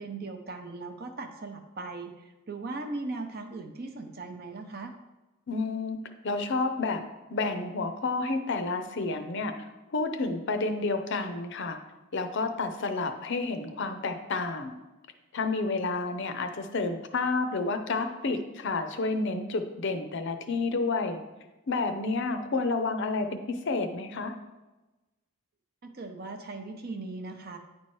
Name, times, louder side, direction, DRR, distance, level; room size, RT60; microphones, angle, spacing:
voice 1, 0.0-4.9 25.8-27.6, right 3 dB, 45° right, 5 dB, 0.7 m, -38 dB
voice 2, 5.5-6.0 6.2-7.0 7.3-9.6 9.9-11.8 12.1-14.8 15.3-21.2 21.7-24.3, left 3 dB, 55° left, 7 dB, 0.6 m, -30 dB
9.6 x 4.4 x 3.1 m, 1.1 s
head